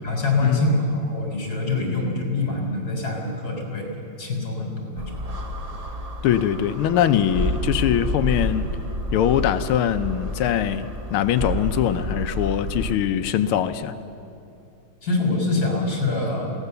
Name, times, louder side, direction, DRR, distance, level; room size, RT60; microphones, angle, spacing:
voice 1, 0.0-3.9 4.2-5.1 15.0-16.5, left 2 dB, 45° left, 1 dB, 4.2 m, -25 dB
sound 1, 5.0-13.0, equal, 45° right, 0.5 m, -29 dB
voice 2, 6.2-8.8 9.1-14.0, left 10 dB, 80° left, 10 dB, 1.6 m, -22 dB
22.5 x 17.0 x 6.9 m, 2.6 s
omnidirectional pair, 2.4 m